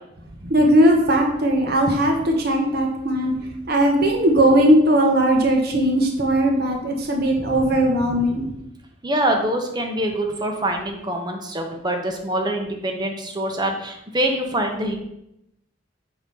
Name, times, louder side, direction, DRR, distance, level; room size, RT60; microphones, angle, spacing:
voice 1, 0.4-3.3 3.7-8.5, right 1 dB, 55° right, 2 dB, 0.9 m, -18 dB
voice 2, 9.0-14.9, right 1 dB, 25° right, 3 dB, 1.0 m, -24 dB
8.4 x 3.1 x 5.4 m, 0.82 s
head